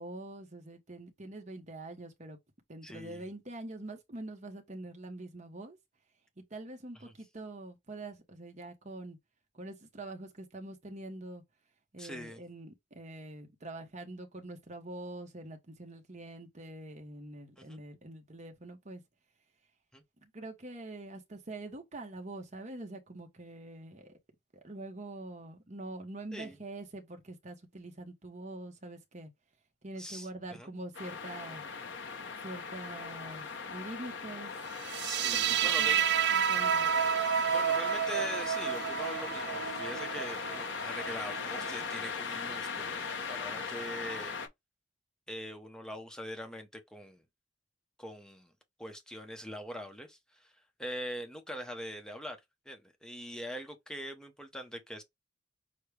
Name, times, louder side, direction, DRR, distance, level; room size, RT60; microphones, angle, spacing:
voice 1, 0.0-2.4 2.7-5.8 6.4-9.2 9.5-11.4 11.9-19.0 20.2-24.1 24.6-29.3 29.8-31.6 32.4-34.5 35.6-36.0 36.3-37.0, right 2 dB, 40° right, 1.1 m, -45 dB
voice 2, 2.8-3.3 7.0-7.1 12.0-12.4 17.6-17.8 19.9-20.0 26.3-26.6 30.0-30.7 35.0-36.1 37.5-43.0 43.3-44.4 45.3-47.2 48.0-48.5 48.8-50.5 50.8-52.4 52.7-55.0, equal, 5° left, 0.8 m, -43 dB
sound 1, 30.9-44.5, left 5 dB, 90° left, 1.0 m, -39 dB
sound 2, 34.8-41.9, right 8 dB, 65° right, 0.5 m, -30 dB
6.4 x 2.2 x 3.3 m
head